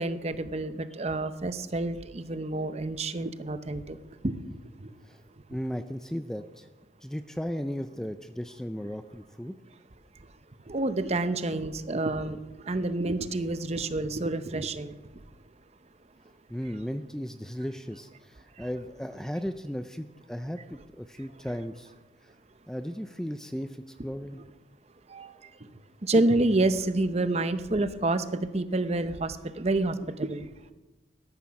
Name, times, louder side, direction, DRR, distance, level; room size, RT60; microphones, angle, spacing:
voice 1, 0.0-4.0 4.2-4.3 10.7-12.4 12.7-14.9 25.1-25.3 26.0-30.4, right 2 dB, 35° right, 12 dB, 0.7 m, -28 dB
voice 2, 5.5-6.7 7.0-9.6 16.5-21.9 22.7-24.4, equal, 5° left, 9 dB, 0.4 m, -36 dB
12.5 x 12.5 x 5.8 m, 1.1 s
head